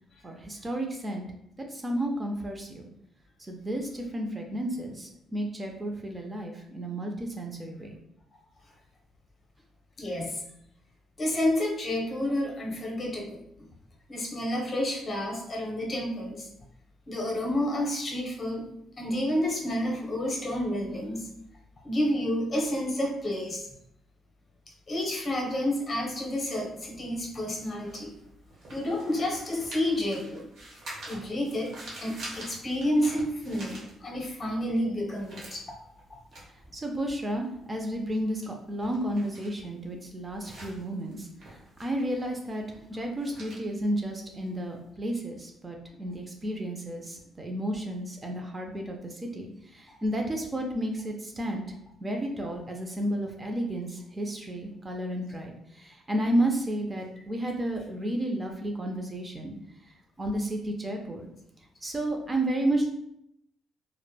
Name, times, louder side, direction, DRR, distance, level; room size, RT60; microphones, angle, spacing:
voice 1, 0.2-1.2 1.6-2.9 3.4-7.9 36.5-51.6 52.0-59.5 60.2-61.3 61.8-62.9, right 1 dB, 25° right, 2 dB, 0.4 m, -32 dB
voice 2, 10.0-10.4 11.2-13.4 14.1-16.5 17.1-18.7 19.0-21.3 21.8-23.7 24.9-28.1 28.7-30.4 31.1-31.7 32.0-35.6, left 1 dB, 40° left, 0 dB, 0.7 m, -30 dB
sound 1, 26.6-34.4 34.7-44.8, right 1 dB, 65° right, 1.0 m, -47 dB
3.0 x 2.1 x 2.2 m, 0.75 s
cardioid pair, 90°, 0 cm